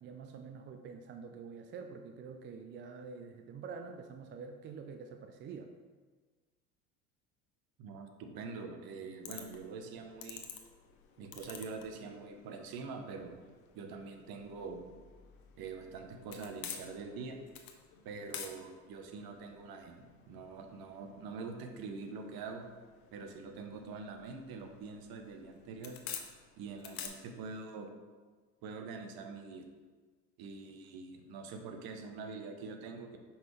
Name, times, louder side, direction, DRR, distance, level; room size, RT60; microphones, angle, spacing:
voice 1, 0.0-5.7, right 5 dB, 30° right, 6 dB, 0.4 m, -47 dB
voice 2, 7.8-10.4 11.2-13.4 13.7-14.8 15.6-17.4 18.0-22.6 23.1-26.0 26.6-27.9 28.6-29.6 30.4-33.2, right 4 dB, 55° right, 4 dB, 1.0 m, -44 dB
sound 1, 9.2-27.1, left 8 dB, 50° left, 0.9 m, -51 dB
5.6 x 5.3 x 3.2 m, 1.4 s
hypercardioid pair, 80°, 45 cm